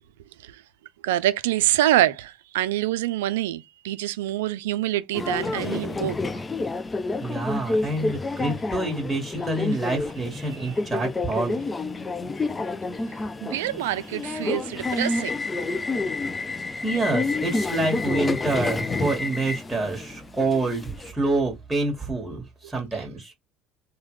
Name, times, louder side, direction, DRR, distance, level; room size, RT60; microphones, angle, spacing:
voice 1, 1.0-6.2 10.5-10.7 13.4-15.4, right 14 dB, 90° right, 0.3 m, -25 dB
Subway metro underground, 5.1-21.1, left 3 dB, 20° left, 0.4 m, -29 dB
voice 2, 7.2-11.6 16.8-23.3, right 2 dB, 10° right, 1.5 m, -27 dB
3.1 x 2.2 x 3.1 m
supercardioid pair, 90°, 0 cm